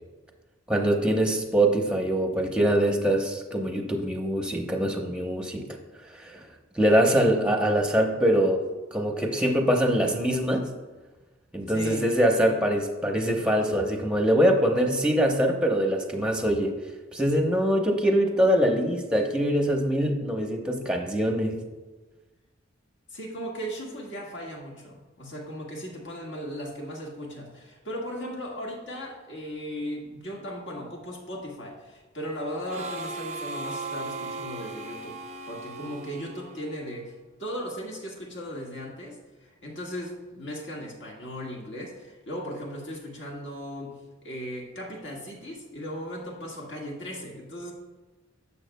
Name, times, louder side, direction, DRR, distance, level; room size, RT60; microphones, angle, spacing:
voice 1, 0.7-5.7 6.1-6.5 6.7-8.6 8.9-10.7 11.5-16.7 17.1-21.6, equal, 5° right, 3 dB, 0.8 m, -23 dB
voice 2, 11.7-12.1 23.1-35.2 35.5-47.7, equal, 60° left, -2 dB, 1.7 m, -37 dB
Harmonica, 32.7-37.2, right 3 dB, 35° right, 0.5 m, -37 dB
11.5 x 7.3 x 2.2 m, 1.2 s
head